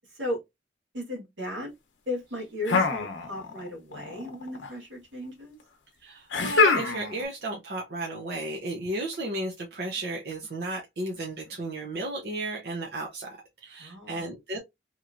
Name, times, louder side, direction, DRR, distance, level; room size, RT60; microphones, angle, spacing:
voice 1, 0.1-0.4 0.9-1.7 2.0-5.6 13.8-14.4, left 1 dB, 85° right, 1.7 m, -36 dB
sound 1, 2.7-3.7 3.9-4.7 6.3-7.2, left 4 dB, 90° left, 0.7 m, -25 dB
voice 2, 6.0-14.6, right 2 dB, 55° right, 0.7 m, -34 dB
3.0 x 2.9 x 2.5 m
head